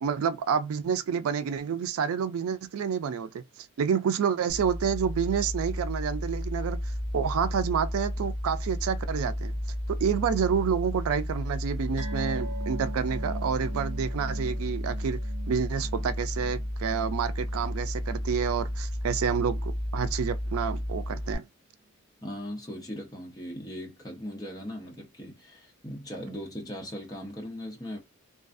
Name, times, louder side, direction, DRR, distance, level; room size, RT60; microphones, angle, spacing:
voice 1, 0.0-9.5 9.9-15.2 15.5-21.4, right 7 dB, 80° right, 0.3 m, -29 dB
sound 1, 4.5-21.3, equal, 25° right, 0.6 m, -32 dB
sound 2, 12.0-18.8 19.1-19.3 19.6-19.7, right 3 dB, 65° right, 1.1 m, -43 dB
voice 2, 22.2-28.0, equal, 20° left, 0.7 m, -39 dB
2.5 x 2.3 x 2.4 m
head